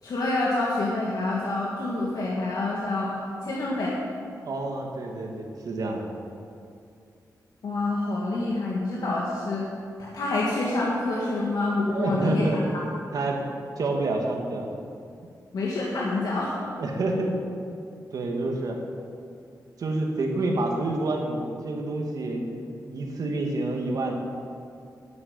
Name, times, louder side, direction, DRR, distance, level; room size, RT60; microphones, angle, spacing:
voice 1, 0.0-3.9 7.6-9.6 10.0-12.6 15.5-16.5, left 2 dB, 70° left, -5 dB, 1.8 m, -27 dB
voice 2, 4.4-6.1 11.9-12.6 13.1-13.4 13.8-14.7 16.8-17.3 18.1-18.8 19.8-24.1, right 2 dB, 65° right, 1 dB, 1.8 m, -28 dB
11.0 x 8.0 x 8.1 m, 2.4 s
wide cardioid pair, 160°, 7 cm